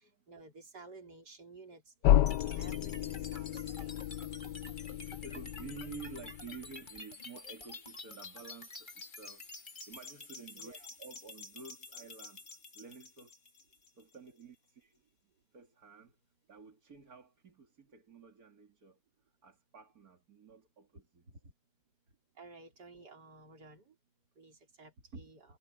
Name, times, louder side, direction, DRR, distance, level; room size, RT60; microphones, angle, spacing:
voice 1, 0.3-1.8 2.4-4.1 10.6-10.8 22.4-23.9 24.4-25.4, right 3 dB, 75° right, 4.4 m, -54 dB
sound 1, 2.0-6.7, left 12 dB, 85° left, 1.3 m, -32 dB
sound 2, 2.3-14.3, left 3 dB, 30° left, 2.0 m, -49 dB
voice 2, 4.8-9.4 9.9-13.4 13.9-15.0 15.5-16.2 16.5-19.0 19.4-21.5 25.1-25.3, right 5 dB, 60° right, 3.1 m, -51 dB
omnidirectional pair, 1.8 m